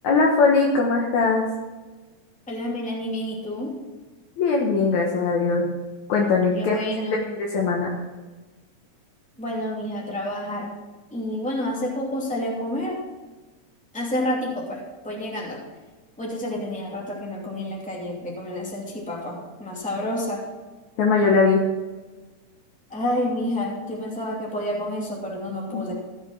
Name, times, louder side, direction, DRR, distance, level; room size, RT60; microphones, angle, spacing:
voice 1, 0.0-1.5 4.4-5.7 6.1-6.9 7.1-7.9 21.0-21.6 25.7-25.9, left 4 dB, 70° left, -1 dB, 2.6 m, -20 dB
voice 2, 2.5-3.7 6.5-7.3 9.4-10.8 11.1-13.0 13.9-15.6 16.2-20.5 22.9-25.9, left 1 dB, 5° left, -3 dB, 2.0 m, -29 dB
15.5 x 6.3 x 5.9 m, 1.3 s
omnidirectional pair, 3.4 m